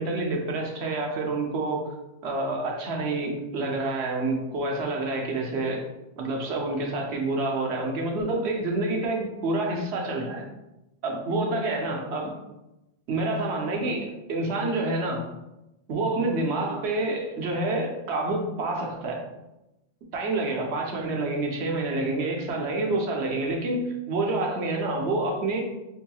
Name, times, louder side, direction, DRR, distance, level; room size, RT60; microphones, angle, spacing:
voice 1, 0.0-1.9 2.2-5.9 6.2-10.5 11.0-12.4 13.1-15.3 15.9-19.2 20.1-25.6, right 2 dB, 85° right, 1 dB, 1.0 m, -28 dB
5.2 x 2.8 x 2.3 m, 0.95 s
omnidirectional pair, 1.1 m